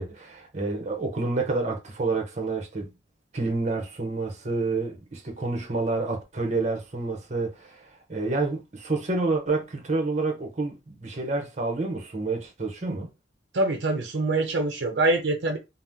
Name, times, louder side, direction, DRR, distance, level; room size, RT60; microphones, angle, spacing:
voice 1, 0.0-2.9 3.3-13.1, right 3 dB, 40° right, 0.8 m, -29 dB
voice 2, 13.5-15.6, right 2 dB, 70° right, 0.6 m, -24 dB
2.7 x 2.0 x 3.5 m
head